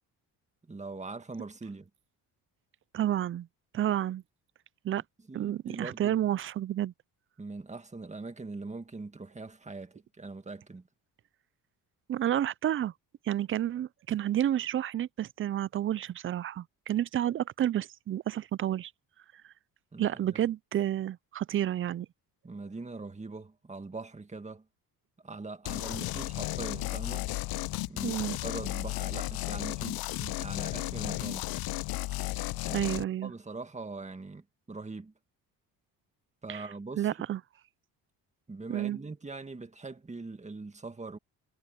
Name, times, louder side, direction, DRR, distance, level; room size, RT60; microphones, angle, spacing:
voice 1, 0.7-1.9 5.3-6.2 7.4-10.8 19.9-20.5 22.4-24.6 25.2-27.3 27.9-31.5 32.7-32.9 33.2-35.1 36.4-37.1 38.5-41.2, right 3 dB, 20° right, 1.9 m, -42 dB
voice 2, 2.9-3.5 3.7-4.2 4.8-5.0 5.3-6.9 12.1-12.9 13.3-18.9 20.0-22.1 28.0-28.4 32.7-33.3 36.5-36.7 37.0-37.4 38.7-39.0, right 11 dB, 35° right, 0.4 m, -30 dB
sound 1, 25.7-33.0, left 17 dB, 70° left, 0.6 m, -34 dB
cardioid pair, 100°, 38 cm